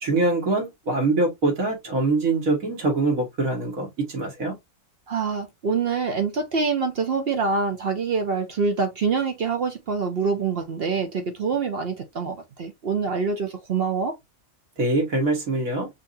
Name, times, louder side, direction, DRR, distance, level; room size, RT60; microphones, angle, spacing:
voice 1, 0.0-4.6 14.8-15.9, right 2 dB, 80° right, 2.0 m, -24 dB
voice 2, 5.1-14.1, right 5 dB, 55° right, 0.8 m, -25 dB
6.2 x 2.6 x 2.6 m
omnidirectional pair, 1.4 m